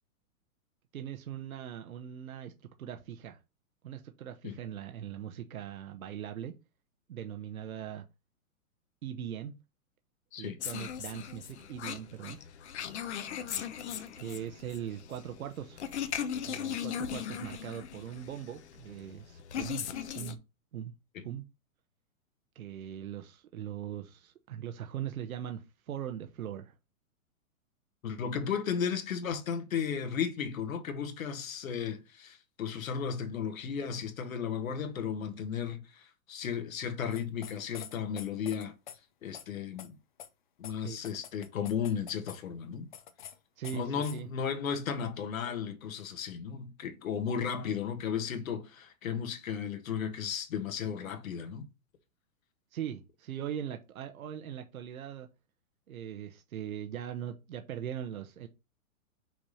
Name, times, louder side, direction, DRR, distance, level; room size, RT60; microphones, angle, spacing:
voice 1, 0.9-2.5 2.8-3.4 3.8-6.5 7.1-8.0 9.0-9.5 10.4-12.4 14.2-15.8 16.5-19.9 20.1-20.4 20.7-20.9 21.2-21.4 22.5-26.7 40.8-41.0 43.6-44.3 52.7-55.3 55.9-58.5, right 10 dB, 75° right, 1.1 m, -40 dB
sound 1, 10.6-20.4, left 8 dB, 50° left, 1.0 m, -38 dB
voice 2, 28.0-38.7 39.2-40.0 40.6-42.9 43.7-51.7, left 7 dB, 65° left, 1.7 m, -34 dB
sound 2, 37.1-39.0 39.3-39.4 39.8-39.9 40.2-40.3 40.6-40.7 41.0-42.4 42.9-43.4 43.6-44.2, left 9 dB, 35° left, 0.6 m, -46 dB
6.1 x 3.4 x 5.5 m
hypercardioid pair, 165°, 43 cm